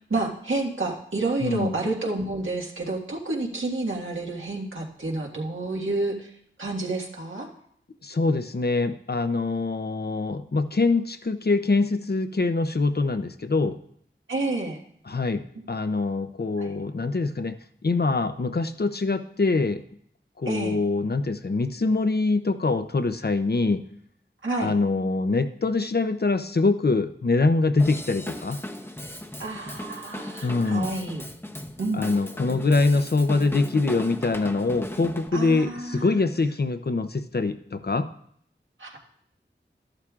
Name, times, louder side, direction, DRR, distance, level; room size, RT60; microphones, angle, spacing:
voice 1, 0.1-6.3 6.6-7.5 14.3-14.8 16.6-16.7 20.4-20.8 24.4-24.7 29.4-31.2 31.8-32.0 32.5-32.6 35.3-36.1 38.8-39.0, right 2 dB, 80° right, -1 dB, 1.7 m, -29 dB
voice 2, 1.4-1.7 8.0-13.8 15.1-17.6 17.8-19.8 20.4-23.8 24.6-28.6 30.4-30.9 31.9-38.1, left 3 dB, 55° left, 9 dB, 0.6 m, -24 dB
Drum kit / Drum, 27.8-35.3, left 1 dB, 10° left, 0.8 m, -37 dB
13.0 x 11.5 x 2.4 m, 0.67 s
wide cardioid pair, 60°, 20 cm